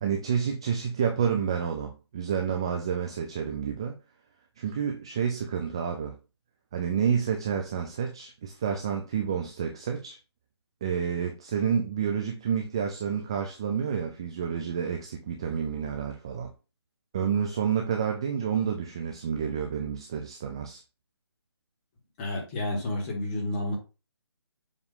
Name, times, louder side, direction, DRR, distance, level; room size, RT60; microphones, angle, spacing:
voice 1, 0.0-4.0 4.6-6.2 6.7-10.2 10.8-16.5 17.1-20.8, right 7 dB, 10° right, 0.3 m, -29 dB
voice 2, 22.2-23.8, left 1 dB, 20° left, 2.0 m, -30 dB
7.3 x 3.1 x 5.2 m
figure-of-eight pair, 160°, 14 cm